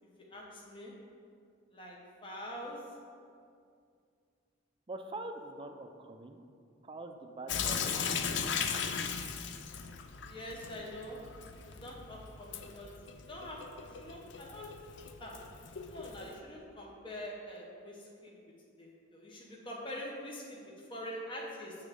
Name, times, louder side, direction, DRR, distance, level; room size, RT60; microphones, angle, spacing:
voice 1, 0.0-0.9 1.7-2.0 2.2-2.8 10.3-11.2 11.6-12.9 13.2-14.7 15.2-15.3 15.9-18.3 18.8-21.8, equal, 25° left, -3 dB, 1.0 m, -45 dB
voice 2, 4.9-6.4 6.8-9.0, right 2 dB, 25° right, 6 dB, 0.4 m, -45 dB
Sink (filling or washing) / Drip, 7.5-16.4, left 6 dB, 60° left, 0.4 m, -38 dB
7.1 x 3.6 x 6.4 m, 2.3 s
head